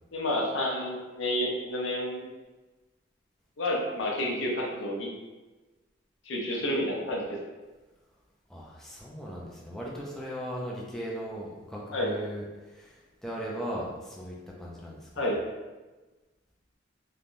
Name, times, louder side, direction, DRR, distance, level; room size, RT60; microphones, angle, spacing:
voice 1, 0.1-2.3 3.6-5.1 6.3-7.4 11.9-12.1 15.2-15.4, left 1 dB, 75° left, -1 dB, 0.6 m, -30 dB
voice 2, 8.5-15.3, equal, ahead, -5 dB, 0.3 m, -38 dB
3.3 x 2.2 x 2.5 m, 1.2 s
head